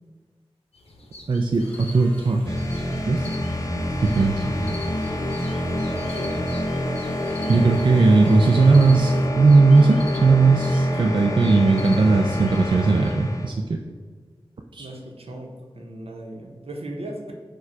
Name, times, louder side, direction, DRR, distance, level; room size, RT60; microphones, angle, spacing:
sound 1, 0.7-13.1, left 2 dB, 85° left, 0.6 m, -45 dB
voice 1, 1.3-2.5 3.1-3.3 4.0-4.4 7.5-13.8 14.7-14.9, right 3 dB, 50° right, 3 dB, 0.4 m, -18 dB
sound 2, 1.5-9.3, right 1 dB, 15° left, 1.3 m, -42 dB
sound 3, 2.5-13.5, left 1 dB, 35° left, 0.6 m, -28 dB
voice 2, 6.1-6.4 14.8-17.3, right 1 dB, 75° right, 1 dB, 0.8 m, -37 dB
4.7 x 2.2 x 4.5 m, 1.5 s
wide cardioid pair, 50°, 10 cm